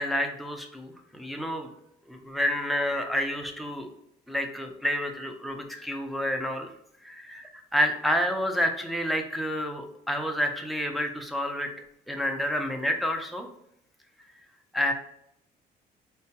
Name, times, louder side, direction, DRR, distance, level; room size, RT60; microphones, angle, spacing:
voice 1, 0.0-1.7 2.1-3.9 4.3-6.7 7.0-11.7 12.1-13.5 14.7-14.9, equal, ahead, 3 dB, 0.5 m, -29 dB
4.3 x 2.2 x 2.8 m, 0.76 s
cardioid pair, 110°, 17 cm